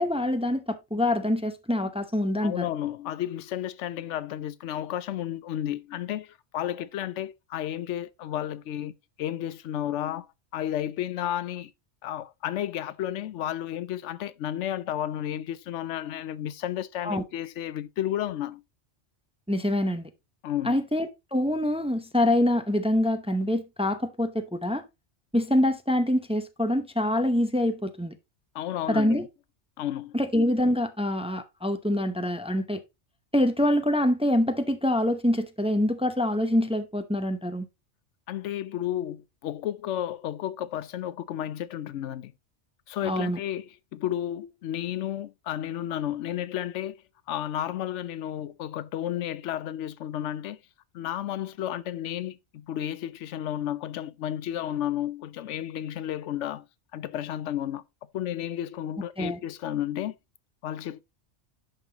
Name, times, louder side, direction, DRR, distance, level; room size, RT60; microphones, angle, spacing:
voice 1, 0.0-2.6 17.0-17.2 19.5-20.1 20.6-24.8 25.3-28.2 28.9-29.2 30.1-32.8 33.3-37.7 43.0-43.4 59.2-59.4, left 1 dB, 5° right, 0.5 m, -25 dB
voice 2, 2.4-8.9 9.2-10.3 10.5-11.7 12.0-18.6 20.4-20.8 28.5-29.2 29.8-30.2 38.3-42.3 42.9-47.0 47.3-50.6 50.9-56.7 56.9-57.8 58.1-60.1 60.6-61.0, left 11 dB, 90° left, 0.9 m, -32 dB
10.5 x 5.5 x 2.9 m
omnidirectional pair, 1.2 m